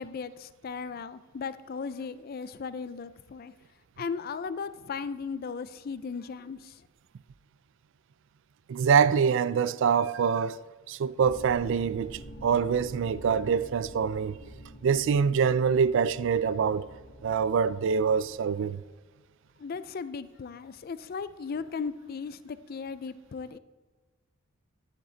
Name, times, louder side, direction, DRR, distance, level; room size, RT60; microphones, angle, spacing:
voice 1, 0.0-3.5 4.0-6.8 19.6-23.6, left 5 dB, 45° left, 0.4 m, -37 dB
voice 2, 8.7-10.6 10.9-14.3 14.8-16.8 17.2-18.8, right 6 dB, 60° right, 0.3 m, -25 dB
sound 1, 11.2-18.4, equal, 75° left, 1.4 m, -47 dB
11.5 x 7.3 x 3.9 m
head